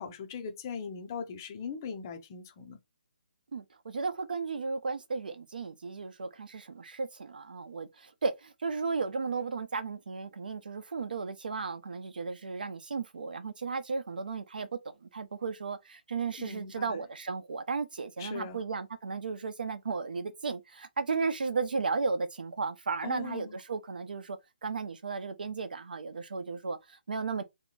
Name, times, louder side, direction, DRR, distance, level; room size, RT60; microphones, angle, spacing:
voice 1, 0.0-2.8 16.4-17.0 18.2-18.6 23.0-23.6, left 6 dB, 20° left, 0.5 m, -40 dB
voice 2, 3.5-27.4, right 4 dB, 65° right, 0.8 m, -35 dB
3.5 x 2.9 x 3.9 m
hypercardioid pair, 175°, 5 cm